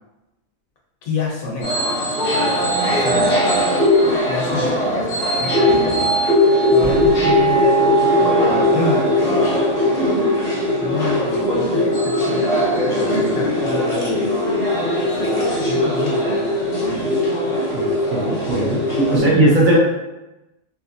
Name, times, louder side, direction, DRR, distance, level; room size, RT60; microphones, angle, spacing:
voice 1, 1.0-3.4 4.2-6.0 6.7-9.5 10.8-12.6 12.9-14.4 15.1-17.2 19.0-19.5, left 3 dB, 70° left, -1 dB, 1.1 m, -29 dB
sound 1, 1.6-19.2, left 1 dB, 35° left, 0.7 m, -19 dB
Slam, 6.8-8.7, right 1 dB, 85° right, 1.1 m, -31 dB
voice 2, 17.5-19.8, right 1 dB, 65° right, -5 dB, 1.3 m, -18 dB
3.4 x 2.9 x 2.6 m, 0.98 s
omnidirectional pair, 1.6 m